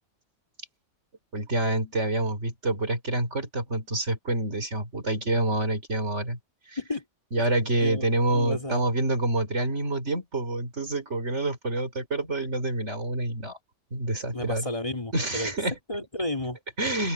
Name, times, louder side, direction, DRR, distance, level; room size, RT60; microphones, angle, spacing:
voice 1, 1.3-6.4 6.7-6.8 7.3-13.6 13.9-14.7 15.1-15.8 16.8-17.1, right 2 dB, 70° right, 4.7 m, -27 dB
voice 2, 7.8-8.8 14.3-15.5 15.9-16.6, left 1 dB, 25° left, 2.8 m, -32 dB
omnidirectional pair, 1.3 m